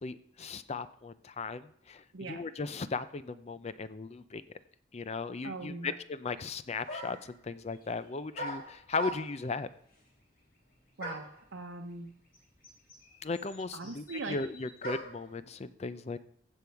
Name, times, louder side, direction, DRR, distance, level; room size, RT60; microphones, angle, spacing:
voice 1, 0.0-4.4 4.9-9.7 13.2-16.2, left 4 dB, 35° left, 14 dB, 0.5 m, -37 dB
voice 2, 2.1-2.4 5.4-5.9 11.0-12.2 13.7-14.4, right 3 dB, 85° right, 3 dB, 0.9 m, -41 dB
sound 1, 6.4-6.5 6.9-7.3 8.3-9.5 11.0-11.4 12.3-12.4 12.6-15.3, right 1 dB, 50° left, 3.4 m, -41 dB
15.5 x 5.3 x 4.6 m, 0.68 s
head